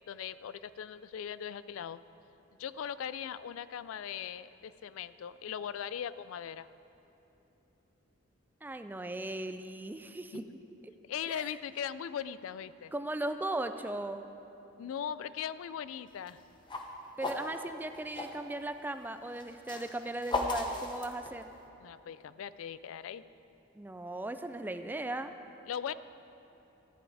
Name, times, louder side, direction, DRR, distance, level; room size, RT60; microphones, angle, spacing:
voice 1, 0.0-2.0 2.6-6.7 10.3-10.4 11.1-12.9 14.8-16.4 21.8-23.2 25.7-25.9, left 8 dB, 80° left, 15 dB, 0.3 m, -39 dB
voice 2, 8.6-10.5 10.8-10.9 11.3-11.5 12.9-14.3 17.2-21.5 23.7-25.3, right 1 dB, 10° right, 9 dB, 0.3 m, -38 dB
sound 1, 16.2-18.4 19.3-21.7, left 2 dB, 25° left, 0.9 m, -36 dB
14.0 x 9.3 x 4.8 m, 2.9 s
head